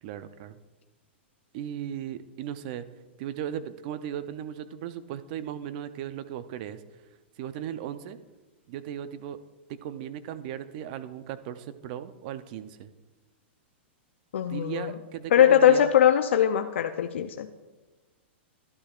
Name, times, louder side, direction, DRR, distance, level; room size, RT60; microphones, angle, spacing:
voice 1, 0.0-0.6 1.5-2.8 3.2-6.8 7.4-8.2 8.7-9.4 9.7-12.9 14.5-15.9, right 10 dB, 45° right, 12 dB, 0.6 m, -37 dB
voice 2, 14.3-14.9 15.3-17.5, left 9 dB, 80° left, 6 dB, 0.5 m, -21 dB
12.0 x 12.0 x 2.4 m, 1.2 s
hypercardioid pair, 145°, 6 cm